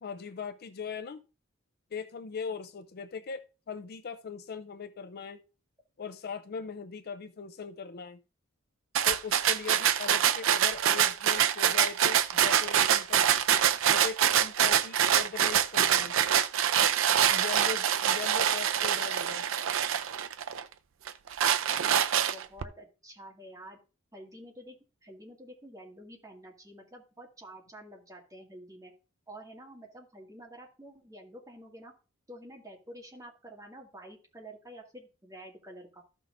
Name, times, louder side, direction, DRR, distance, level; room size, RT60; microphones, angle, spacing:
voice 1, 0.0-1.2 1.9-5.4 6.0-8.2 9.1-13.2 13.9-16.1 17.3-19.4, left 6 dB, 50° left, 11 dB, 0.5 m, -40 dB
sound 1, 9.0-20.6 21.1-22.6, right 9 dB, 70° right, 0.5 m, -25 dB
voice 2, 21.7-23.8 24.1-24.8 25.0-28.9 29.3-31.9 32.3-36.0, right 1 dB, 15° right, -1 dB, 2.1 m, -49 dB
14.0 x 6.0 x 2.6 m, 0.33 s
head